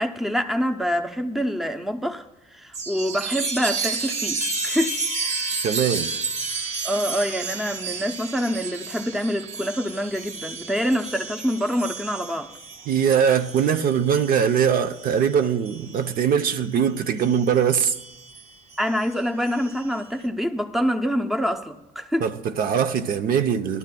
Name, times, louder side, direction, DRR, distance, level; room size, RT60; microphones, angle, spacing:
voice 1, 0.0-2.2 2.5-5.0 6.8-12.5 18.8-22.3, equal, ahead, 0.6 m, -26 dB
Chime, 2.7-16.7 17.2-20.0, right 5 dB, 40° right, 1.0 m, -32 dB
sound 1, 4.4-7.0, left 9 dB, 40° left, 0.4 m, -35 dB
voice 2, 5.6-6.1 12.9-17.9 22.2-23.8, right 7 dB, 60° right, 0.7 m, -21 dB
19.0 x 12.0 x 2.3 m
cardioid pair, 110°, 17 cm